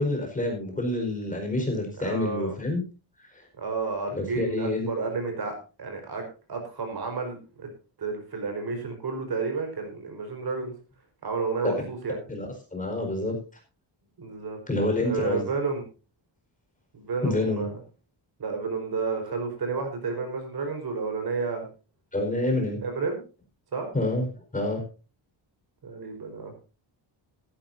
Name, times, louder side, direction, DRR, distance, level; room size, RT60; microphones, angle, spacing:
voice 1, 0.0-2.8 3.3-3.4 4.1-4.9 11.6-11.7 12.3-13.4 14.7-15.4 17.2-17.6 22.1-22.8 23.9-24.3 24.5-24.8, left 2 dB, 15° left, 2 dB, 4.6 m, -27 dB
voice 2, 2.0-2.5 3.6-7.7 8.0-10.7 11.2-12.2 14.2-14.6 15.0-15.8 16.9-17.7 18.4-21.7 22.8-23.2 23.7-23.9 25.8-26.5, right 4 dB, 50° right, 5 dB, 4.7 m, -31 dB
15.5 x 14.5 x 2.7 m, 0.32 s
wide cardioid pair, 170°, 47 cm